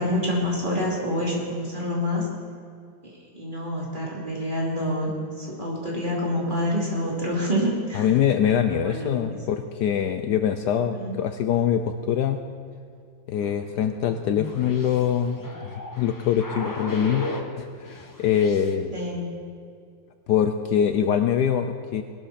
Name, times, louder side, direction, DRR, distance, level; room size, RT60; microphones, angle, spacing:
voice 1, 0.0-2.3 3.3-5.1 5.4-8.1 8.7-9.4 10.9-11.2 18.9-19.3, left 1 dB, 25° right, -4 dB, 3.0 m, -27 dB
voice 2, 7.9-12.4 13.3-18.9 20.3-22.0, left 8 dB, 70° left, 8 dB, 1.1 m, -24 dB
sound 1, 13.4-17.5 17.9-18.8, left 2 dB, 15° left, 0.7 m, -36 dB
20.0 x 12.5 x 4.3 m, 2.3 s
omnidirectional pair, 2.0 m